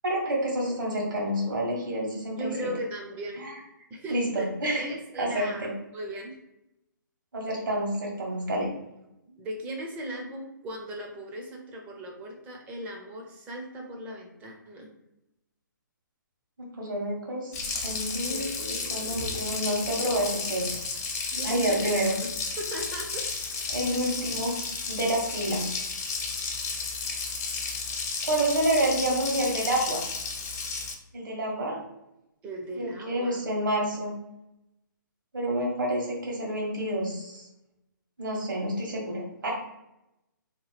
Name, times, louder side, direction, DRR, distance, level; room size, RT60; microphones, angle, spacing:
voice 1, 0.0-2.5 3.4-3.5 4.1-4.9 5.1-5.7 7.3-8.7 16.6-17.5 17.8-18.5 18.9-20.8 21.4-22.1 23.7-24.6 24.9-25.6 28.2-30.0 31.1-31.8 32.8-34.1 35.3-37.5 38.2-39.5, right 1 dB, 70° right, -2 dB, 1.3 m, -28 dB
voice 2, 2.3-3.4 3.9-4.5 4.8-6.3 9.4-14.9 18.3-19.5 21.3-23.3 32.4-33.4, right 1 dB, 15° right, 1 dB, 0.4 m, -38 dB
Water tap faucet, 17.5-30.9, left 4 dB, 50° left, 0.6 m, -33 dB
2.9 x 2.2 x 3.3 m, 0.88 s
figure-of-eight pair, 140°, 11 cm